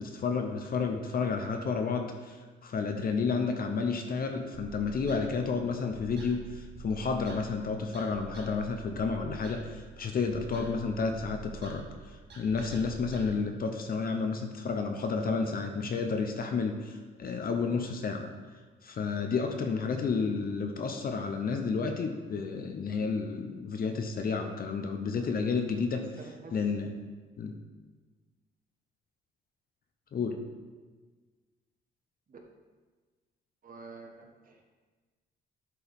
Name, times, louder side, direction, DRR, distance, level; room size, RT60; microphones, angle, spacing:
voice 1, 0.0-2.4 2.6-18.3 18.8-26.0 26.5-26.9 27.4-27.5 30.1-30.4, left 5 dB, 50° left, 5 dB, 0.7 m, -31 dB
sound 1, 4.5-13.3, right 5 dB, 60° right, 1.8 m, -46 dB
voice 2, 25.9-26.6 32.3-32.4 33.6-34.6, right 3 dB, 45° right, 1 dB, 1.3 m, -48 dB
10.5 x 4.6 x 3.6 m, 1.4 s
cardioid pair, 90°, 20 cm